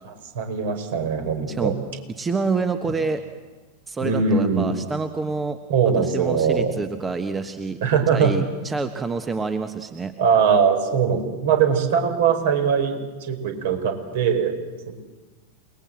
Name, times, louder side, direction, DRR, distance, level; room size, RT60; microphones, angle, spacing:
voice 1, 0.0-1.7 4.0-4.7 5.7-6.7 7.8-8.3 10.2-14.6 14.9-15.0, right 6 dB, 55° right, 6 dB, 4.9 m, -21 dB
voice 2, 2.2-3.2 3.9-5.6 6.0-7.8 8.1-10.1, right 4 dB, 15° right, 9 dB, 1.3 m, -27 dB
29.0 x 20.5 x 7.7 m, 1.3 s
figure-of-eight pair, 90°, 0 cm